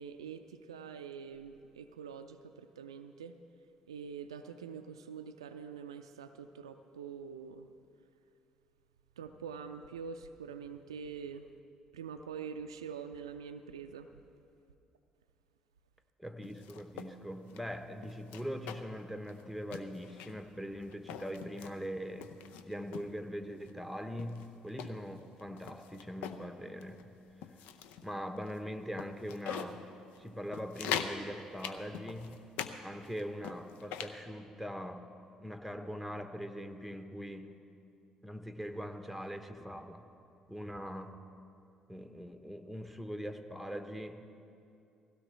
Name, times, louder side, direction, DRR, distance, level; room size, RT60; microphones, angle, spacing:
voice 1, 0.0-3.4 3.9-7.7 9.2-11.5 11.9-14.1, right 6 dB, 85° right, 8 dB, 0.4 m, -45 dB
voice 2, 16.2-22.3 22.6-27.2 28.0-29.8 30.2-32.4 32.8-35.1 35.4-37.5 38.2-40.1 40.5-41.2 41.9-44.3, equal, ahead, 7 dB, 1.1 m, -42 dB
sound 1, 16.4-17.1 17.5-17.6 18.0-19.0 19.3-19.4 19.7-20.5 20.9-21.7 22.2-23.1 23.7-23.8 24.2-26.4 26.8-27.0 27.4-28.1 28.5-28.6 29.0-29.8 30.1-30.2 30.5-31.2 31.6-32.8 33.0-34.2, left 8 dB, 70° left, 0.6 m, -41 dB
17.5 x 16.5 x 3.4 m, 2.6 s
hypercardioid pair, 50°, 3 cm